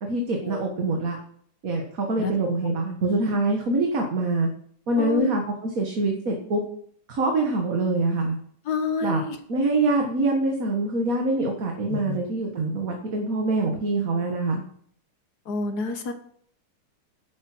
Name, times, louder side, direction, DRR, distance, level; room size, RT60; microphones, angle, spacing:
voice 1, 0.0-1.2 1.6-4.5 4.9-6.6 7.1-8.4 9.0-9.2 9.5-14.6, right 2 dB, 45° right, 2 dB, 1.8 m, -25 dB
voice 2, 5.0-5.3 8.7-9.4 11.9-12.2 15.5-16.1, left 5 dB, 50° left, 8 dB, 1.7 m, -28 dB
10.5 x 8.5 x 6.1 m, 0.62 s
omnidirectional pair, 2.3 m